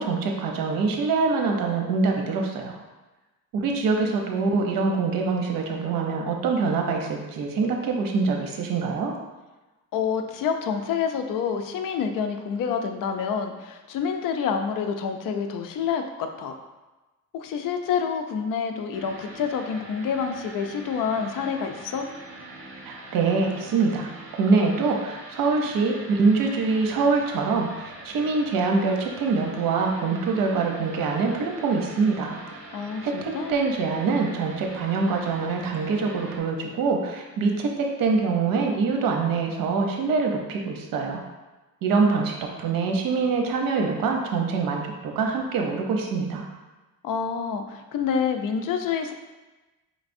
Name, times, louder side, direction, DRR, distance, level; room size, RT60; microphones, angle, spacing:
voice 1, 0.0-2.8 3.5-9.1 22.9-24.1 24.4-32.4 33.0-41.2 41.8-42.3 42.6-46.5, right 4 dB, 80° right, 2 dB, 0.8 m, -24 dB
voice 2, 9.9-16.5 17.3-22.1 32.7-33.5 47.0-49.1, left 6 dB, 70° left, 6 dB, 0.5 m, -28 dB
sound 1, 18.9-36.4, right 2 dB, 40° right, 1.1 m, -43 dB
5.2 x 3.3 x 2.6 m, 1.1 s
cardioid pair, 120°, 33 cm